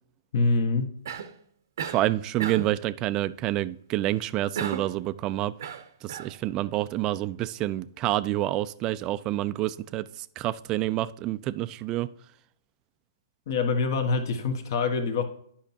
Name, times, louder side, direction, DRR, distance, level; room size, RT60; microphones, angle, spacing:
voice 1, 0.3-0.9 13.5-15.2, left 4 dB, 55° left, 1.3 m, -25 dB
Cough, 1.1-1.4 1.8-2.1 2.4-2.8 4.6-5.0 5.6-6.3, right 7 dB, 60° right, 0.7 m, -34 dB
voice 2, 1.9-5.5 6.0-12.1, right 15 dB, 30° right, 0.3 m, -28 dB
10.0 x 5.7 x 2.7 m
hypercardioid pair, 125°, 2 cm